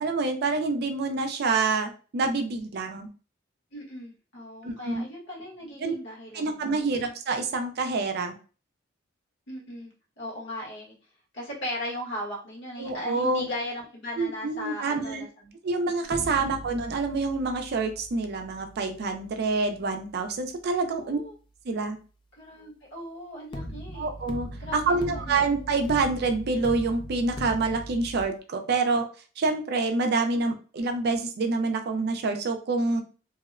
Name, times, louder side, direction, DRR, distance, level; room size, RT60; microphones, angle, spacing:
voice 1, 0.0-3.1 4.6-5.0 5.8-5.9 6.3-8.4 12.8-13.5 14.2-15.2 15.6-21.2 21.7-22.0 23.9-24.5 24.7-29.0 29.4-33.0, right 3 dB, 50° right, 5 dB, 0.4 m, -27 dB
voice 2, 3.7-6.9 9.5-10.9 11.3-15.5 16.2-16.6 20.8-21.3 22.4-24.1 24.6-25.7, left 1 dB, 60° left, -3 dB, 1.2 m, -38 dB
sound 1, 16.0-21.1 23.5-28.2, equal, 25° left, 0.3 m, -40 dB
2.7 x 2.0 x 2.4 m, 0.36 s
head